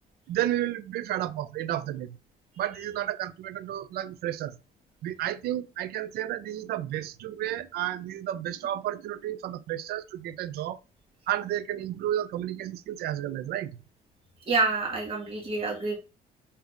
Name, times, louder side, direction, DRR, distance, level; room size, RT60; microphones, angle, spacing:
voice 1, 0.3-2.2 2.6-4.6 5.0-10.8 11.3-13.8, right 12 dB, 70° right, 0.5 m, -32 dB
voice 2, 14.5-16.0, right 3 dB, 35° right, 1.5 m, -27 dB
3.5 x 2.8 x 3.5 m
cardioid pair, 110°, 17 cm